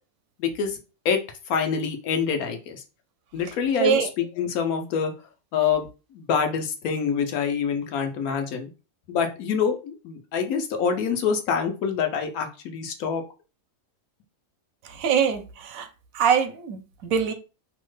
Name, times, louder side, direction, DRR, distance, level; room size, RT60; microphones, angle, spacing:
voice 1, 0.4-0.8 1.0-2.8 3.3-5.1 5.5-5.9 6.1-8.7 9.1-13.2, left 6 dB, 90° left, 1.1 m, -26 dB
voice 2, 15.0-15.9 16.1-17.3, right 7 dB, 75° right, 1.0 m, -23 dB
3.0 x 2.1 x 3.1 m
omnidirectional pair, 1.5 m